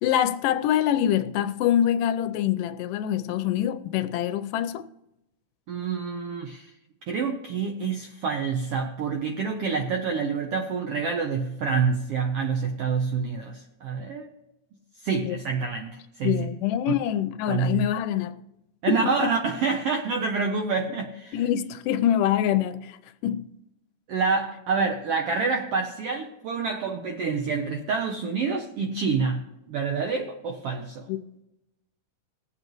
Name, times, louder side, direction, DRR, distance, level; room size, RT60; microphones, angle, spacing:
voice 1, 0.0-4.8 15.2-15.4 16.2-18.3 18.9-19.3 21.3-23.0 23.2-23.5 31.1-31.2, left 11 dB, 90° left, 2.2 m, -25 dB
voice 2, 5.7-6.7 7.1-14.3 15.0-16.5 17.5-17.9 18.8-21.4 24.1-31.1, right 5 dB, 75° right, 1.3 m, -27 dB
20.5 x 7.9 x 3.0 m
omnidirectional pair, 3.7 m